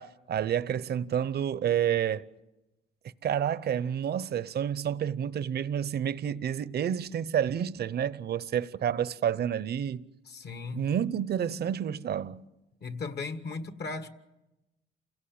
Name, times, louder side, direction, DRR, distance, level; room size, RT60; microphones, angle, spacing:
voice 1, 0.0-2.3 3.2-10.0 10.7-12.4, right 9 dB, 55° right, 0.7 m, -29 dB
voice 2, 10.3-10.9 12.8-14.1, left 4 dB, 55° left, 1.7 m, -37 dB
28.5 x 16.5 x 8.8 m
cardioid pair, 90°, 20 cm